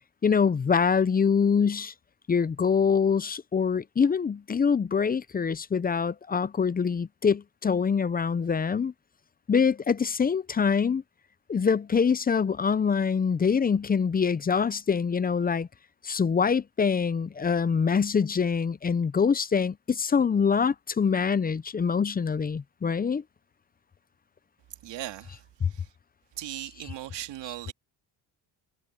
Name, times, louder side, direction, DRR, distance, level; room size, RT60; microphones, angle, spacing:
voice 1, 0.2-1.9 2.3-8.9 9.5-11.0 11.5-15.7 16.0-23.2 25.6-25.7, left 6 dB, 20° left, 0.5 m, -24 dB
voice 2, 24.8-25.9 26.3-27.7, right 13 dB, 70° right, 2.7 m, -38 dB
cardioid pair, 105°, 44 cm